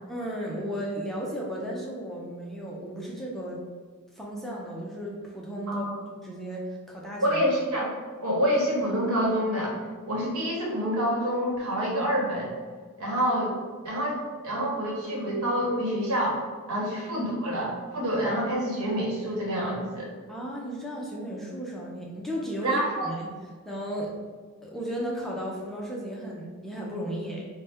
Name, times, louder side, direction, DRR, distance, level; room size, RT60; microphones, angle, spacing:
voice 1, 0.1-3.6 4.2-7.4 20.3-23.3 23.6-24.1 24.6-27.5, equal, ahead, -4 dB, 0.5 m, -34 dB
voice 2, 7.2-7.9 8.2-9.8 10.1-12.6 13.0-13.5 13.8-16.4 16.7-20.1 22.6-23.1, equal, 80° right, -3 dB, 1.0 m, -27 dB
4.1 x 2.1 x 3.4 m, 1.5 s
head